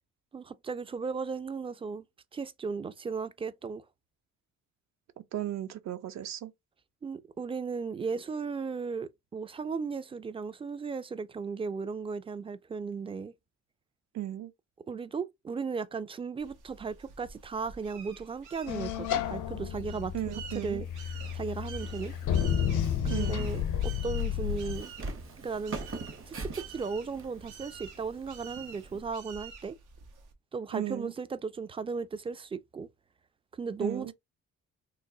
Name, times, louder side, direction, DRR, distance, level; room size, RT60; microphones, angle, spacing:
voice 1, 0.3-2.0 2.3-3.8 7.0-13.3 14.9-20.9 21.3-22.2 23.1-24.9 25.4-25.8 26.3-29.7 30.5-32.9 33.6-34.1, right 5 dB, 20° right, 0.3 m, -36 dB
voice 2, 5.3-6.5 14.1-14.5 20.1-20.8 23.1-23.5 30.7-31.1 33.8-34.1, right 12 dB, 65° right, 0.7 m, -35 dB
sound 1, 16.4-30.3, right 6 dB, 85° right, 1.0 m, -49 dB
sound 2, 18.7-24.8, left 10 dB, 80° left, 0.6 m, -31 dB
Walk footsteps, 20.8-29.0, right 2 dB, 45° right, 1.0 m, -43 dB
3.0 x 2.3 x 3.7 m
cardioid pair, 90°, 30 cm